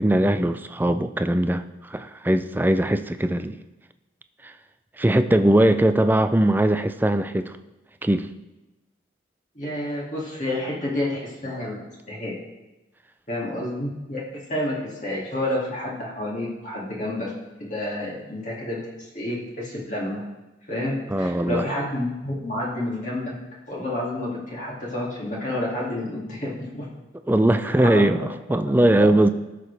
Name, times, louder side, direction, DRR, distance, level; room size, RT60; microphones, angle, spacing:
voice 1, 0.0-3.6 4.4-4.5 5.0-7.5 8.0-8.3 21.1-21.7 27.3-29.3, right 1 dB, 10° right, 10 dB, 0.4 m, -20 dB
voice 2, 9.5-11.8 12.1-12.3 13.3-17.3 17.6-20.2 20.7-23.3 23.7-26.9 27.8-28.3 29.0-29.1, left 1 dB, 40° left, -4 dB, 2.5 m, -29 dB
17.5 x 6.7 x 3.4 m, 1.1 s
head